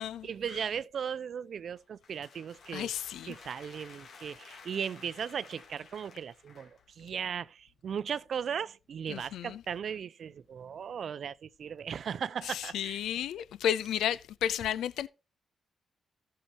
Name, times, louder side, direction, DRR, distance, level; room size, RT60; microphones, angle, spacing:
voice 1, 0.2-2.9 3.3-13.0, right 7 dB, 65° right, 0.6 m, -37 dB
sound 1, 1.8-6.9, left 5 dB, 65° left, 2.8 m, -54 dB
voice 2, 2.7-3.4 9.1-9.6 12.4-15.1, left 10 dB, 90° left, 0.4 m, -32 dB
14.5 x 6.8 x 2.8 m
cardioid pair, 85°, 0 cm